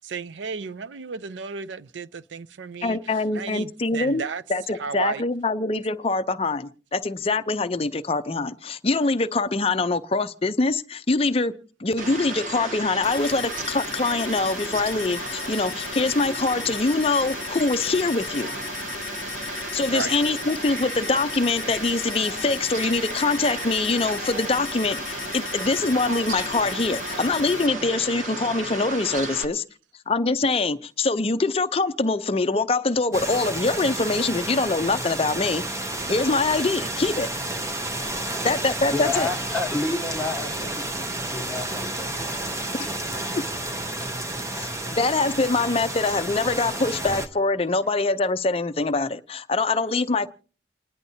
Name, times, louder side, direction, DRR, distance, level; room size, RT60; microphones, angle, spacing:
voice 1, 0.0-4.4 4.7-5.2 19.9-20.1, right 5 dB, 75° right, 0.5 m, -33 dB
voice 2, 2.8-4.2 4.5-11.5 11.8-18.5 19.7-29.6 30.1-35.6 36.1-37.3 38.4-39.3 42.8-42.9 43.3-43.4 44.6-50.3, left 3 dB, 30° left, 0.6 m, -24 dB
Fowl, 12.0-29.5, right 3 dB, 45° right, 1.3 m, -34 dB
sound 1, 13.0-27.7, left 9 dB, 90° left, 0.6 m, -37 dB
sound 2, 33.1-47.3, right 2 dB, 15° right, 0.8 m, -31 dB
voice 3, 38.9-42.6, left 2 dB, 5° left, 1.3 m, -31 dB
29.5 x 10.5 x 2.8 m
head